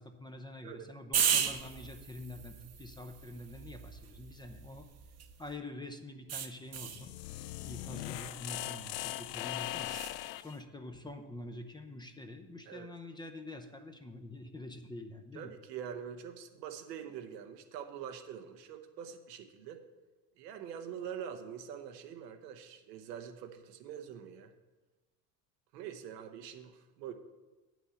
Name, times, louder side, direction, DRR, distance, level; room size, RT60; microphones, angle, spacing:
voice 1, 0.0-4.9 5.4-7.1 7.6-9.9 10.4-15.5, left 2 dB, 10° left, 6 dB, 0.6 m, -46 dB
sound 1, 1.1-5.5 6.3-7.1 9.8-10.2, right 8 dB, 35° right, 0.9 m, -36 dB
sound 2, 6.7-10.6, left 15 dB, 85° left, 0.5 m, -40 dB
voice 2, 15.3-19.8 20.4-24.5 25.7-27.1, right 8 dB, 85° right, 6 dB, 1.1 m, -44 dB
8.1 x 6.2 x 6.9 m, 1.2 s
supercardioid pair, 95°, 48 cm